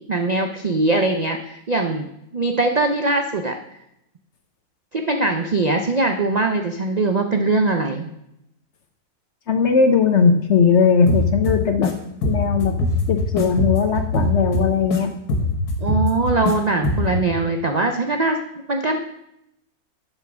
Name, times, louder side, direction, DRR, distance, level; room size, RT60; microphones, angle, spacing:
voice 1, 0.1-2.1 2.3-3.5 4.9-8.1 15.8-18.4 18.7-19.0, right 2 dB, 55° right, 4 dB, 0.4 m, -21 dB
voice 2, 9.5-11.9 12.2-12.8 13.1-15.1, left 5 dB, 55° left, 7 dB, 0.9 m, -18 dB
sound 1, 11.1-11.9 12.2-15.0 15.3-16.5 16.8-17.2, left 2 dB, 75° left, 1.9 m, -22 dB
10.5 x 5.5 x 6.1 m, 0.82 s
omnidirectional pair, 1.7 m